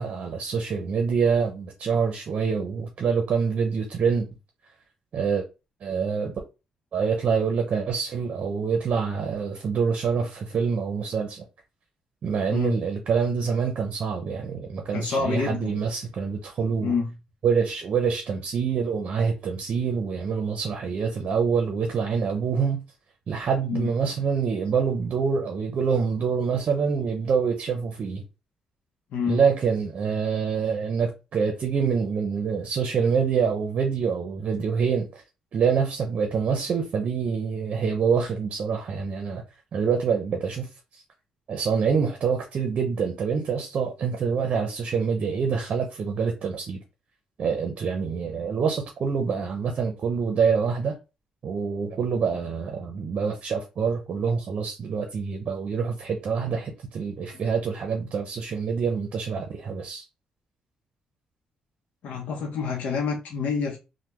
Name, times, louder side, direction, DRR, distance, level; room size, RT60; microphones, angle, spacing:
voice 1, 0.0-4.3 5.1-5.5 5.8-6.3 6.9-11.4 12.2-16.9 17.4-22.8 23.3-28.2 29.3-35.1 35.5-39.4 39.7-40.7 40.9-41.0 41.5-46.8 47.4-50.9 51.4-60.0, right 6 dB, 55° right, 0.6 m, -26 dB
voice 2, 14.9-15.8 16.8-17.1 23.7-23.9 29.1-29.4 62.0-63.8, left 5 dB, 75° left, 0.7 m, -27 dB
3.4 x 2.1 x 2.9 m
cardioid pair, 90°, 2 cm